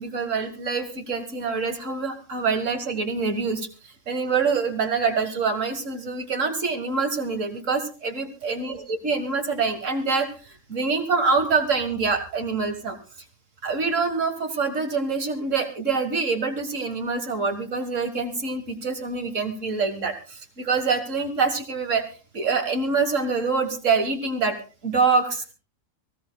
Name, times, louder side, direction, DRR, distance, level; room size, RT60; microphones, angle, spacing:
voice 1, 0.0-3.7 4.1-13.0 13.6-22.1 22.3-24.6 24.8-25.5, right 4 dB, 65° right, 6 dB, 2.0 m, -25 dB
23.5 x 16.0 x 2.3 m, 0.36 s
omnidirectional pair, 1.4 m